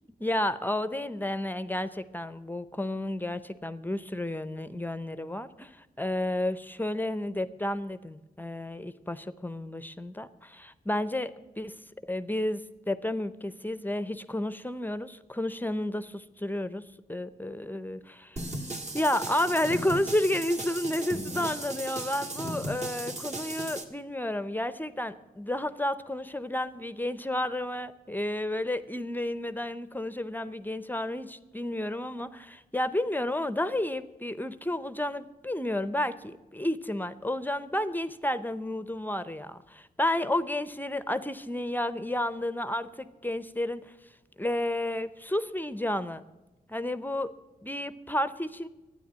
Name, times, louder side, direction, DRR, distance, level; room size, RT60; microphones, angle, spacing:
voice 1, 0.2-11.7 12.0-16.8 17.1-18.4 18.9-43.9 44.4-46.2 46.7-47.3 47.6-48.7, left 1 dB, 10° left, 14 dB, 0.6 m, -31 dB
sound 1, 18.4-23.8, right 2 dB, 45° right, 1.8 m, -36 dB
12.5 x 9.6 x 9.3 m, 1.1 s
wide cardioid pair, 100°, 16 cm